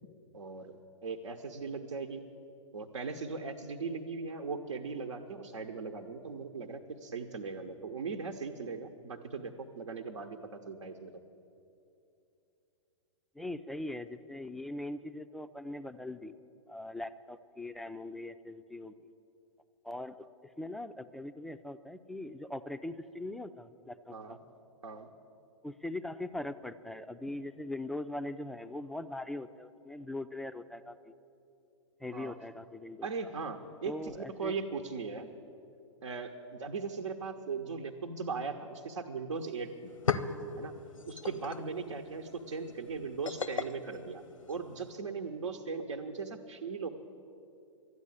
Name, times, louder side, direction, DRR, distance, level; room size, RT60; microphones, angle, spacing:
voice 1, 0.3-2.3 2.7-11.2 24.1-24.4 24.8-25.1 32.1-32.3 33.0-35.3 36.0-39.9 40.6-40.7 41.1-46.9, right 4 dB, 75° right, 2 dB, 0.9 m, -39 dB
voice 2, 13.4-16.3 16.7-19.1 19.8-20.2 20.4-24.4 25.6-31.1 32.0-33.3 33.8-34.5, left 1 dB, ahead, 10 dB, 0.3 m, -41 dB
sound 1, 39.4-39.5 39.7-44.9, left 5 dB, 85° left, 0.7 m, -38 dB
12.5 x 9.6 x 10.0 m, 2.7 s
figure-of-eight pair, 110°, 16 cm